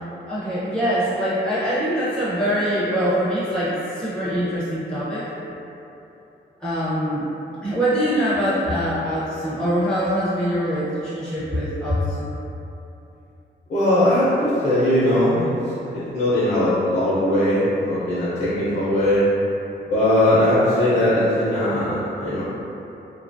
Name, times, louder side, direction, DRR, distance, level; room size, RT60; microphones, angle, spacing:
voice 1, 0.3-5.2 6.6-7.3 7.6-12.4, equal, 5° left, -12 dB, 0.6 m, -23 dB
voice 2, 13.7-15.5 15.9-19.2 19.9-22.4, left 1 dB, 55° left, -10 dB, 0.6 m, -19 dB
2.8 x 2.3 x 2.5 m, 3.0 s
wide cardioid pair, 135°, 19 cm